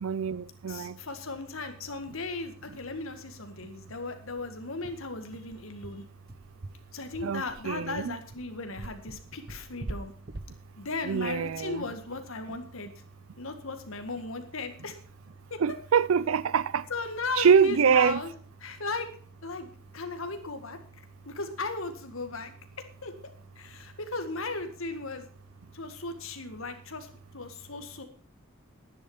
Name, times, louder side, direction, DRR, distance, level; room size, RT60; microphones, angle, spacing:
voice 1, 0.0-0.9 7.2-8.2 11.0-11.8 15.6-16.8 17.4-18.2, right 6 dB, 75° right, 0.5 m, -24 dB
voice 2, 0.7-6.0 6.9-10.1 10.8-12.9 13.4-15.0 15.5-15.6 16.9-18.3 18.6-19.1 19.4-19.7 19.9-20.8 21.3-22.5 23.0-23.1 23.6-25.3 25.7-27.1 27.3-28.0, left 3 dB, 70° left, 1.9 m, -36 dB
sound 1, 2.0-2.1 2.4-2.5 2.8-2.9 3.3-3.4 3.9-12.3, right 2 dB, 45° right, 0.8 m, -44 dB
11.0 x 10.5 x 5.6 m
head